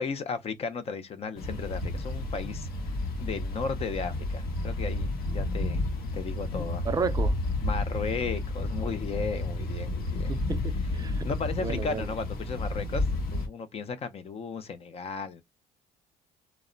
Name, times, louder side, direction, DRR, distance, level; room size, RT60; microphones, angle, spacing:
voice 1, 0.0-2.7 3.2-5.8 6.1-6.9 7.6-10.3 11.2-15.4, left 5 dB, 35° left, 0.5 m, -35 dB
sound 1, 1.4-13.5, left 2 dB, 65° left, 0.8 m, -31 dB
voice 2, 6.8-7.4 10.3-11.3 11.6-12.1, right 5 dB, 20° right, 0.4 m, -32 dB
2.1 x 2.1 x 3.7 m
cardioid pair, 110°, 17 cm